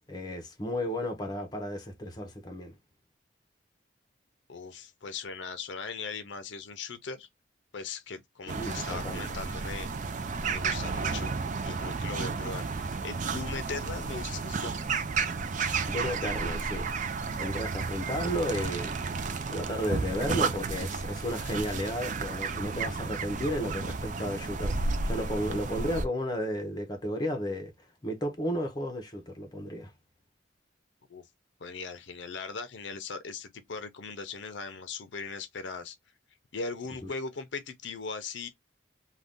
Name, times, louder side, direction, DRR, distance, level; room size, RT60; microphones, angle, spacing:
voice 1, 0.1-2.7 8.5-9.2 15.9-16.9 17.4-19.1 19.5-27.7 28.0-29.9 37.0-37.1, equal, 20° left, 0.7 m, -33 dB
voice 2, 4.5-7.3 7.7-9.9 10.5-11.3 11.6-14.8 31.1-31.2 31.6-36.0 36.5-38.5, left 4 dB, 70° left, 0.5 m, -39 dB
sound 1, 8.5-26.1, right 4 dB, 40° right, 0.4 m, -32 dB
2.5 x 2.3 x 3.4 m
head